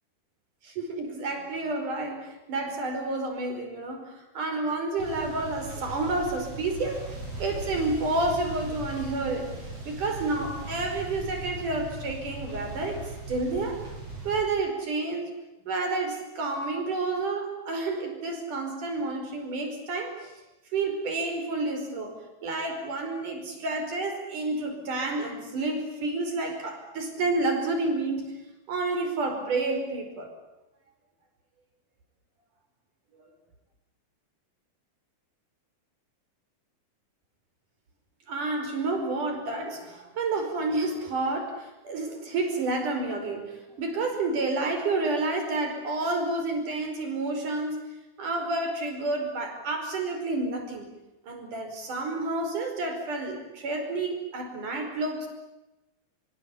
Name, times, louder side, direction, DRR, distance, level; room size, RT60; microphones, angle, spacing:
voice 1, 0.6-7.0 7.4-9.5 9.9-13.0 13.3-13.8 14.2-15.3 15.7-20.3 20.7-22.1 22.4-28.3 28.7-30.4 38.3-47.8 48.2-50.9 51.3-55.3, right 2 dB, 90° right, 5 dB, 6.7 m, -30 dB
sound 1, 5.0-14.4, right 2 dB, 55° right, 8.0 m, -39 dB
25.0 x 24.0 x 8.6 m, 0.99 s
omnidirectional pair, 3.5 m